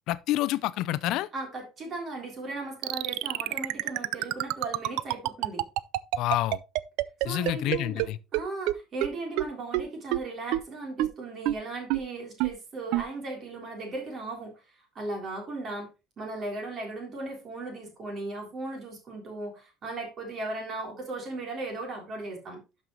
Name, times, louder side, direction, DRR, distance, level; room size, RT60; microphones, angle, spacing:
voice 1, 0.1-1.3 6.2-6.6 7.3-8.2, left 14 dB, 60° left, 0.5 m, -28 dB
voice 2, 1.3-5.6 7.2-14.5 15.0-15.9 16.2-22.6, right 2 dB, 30° right, 3.5 m, -37 dB
sound 1, 2.8-8.1 8.3-8.4 8.7-8.8 9.0-9.1 9.4-9.5 9.7-9.8 10.1-10.2 10.5-10.6 11.0-11.1 11.5-11.6 11.9-12.0 12.4-12.5 12.9-13.0, right 17 dB, 75° right, 0.4 m, -26 dB
12.0 x 5.5 x 3.0 m
cardioid pair, 170°, 0 cm